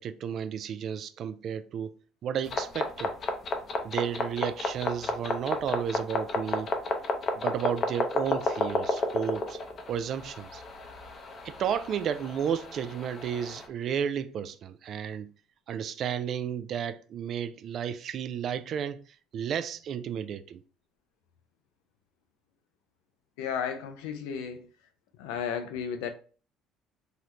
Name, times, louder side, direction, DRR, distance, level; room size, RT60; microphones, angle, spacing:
voice 1, 0.0-2.0 2.2-3.1 3.8-6.7 7.3-9.6 9.9-10.6 11.4-15.3 15.7-19.0 19.3-20.6, right 8 dB, 55° right, 0.3 m, -32 dB
sound 1, 2.4-13.7, left 2 dB, 45° left, 0.6 m, -32 dB
voice 2, 23.4-24.7 25.2-26.1, left 7 dB, 90° left, 0.5 m, -33 dB
3.8 x 2.1 x 3.0 m
supercardioid pair, 95°, 0 cm